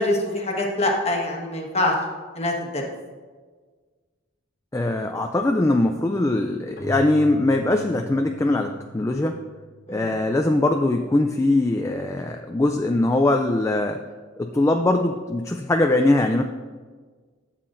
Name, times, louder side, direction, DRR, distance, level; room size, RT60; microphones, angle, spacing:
voice 1, 0.0-1.9 2.3-2.8 9.9-10.1, left 1 dB, 30° left, 0 dB, 1.3 m, -24 dB
voice 2, 4.7-9.4 9.9-14.0 14.4-16.4, left 2 dB, 15° left, 4 dB, 0.3 m, -21 dB
Keyboard (musical), 6.8-10.3, right 2 dB, 65° left, 1.4 m, -40 dB
12.5 x 7.4 x 2.6 m, 1.5 s
head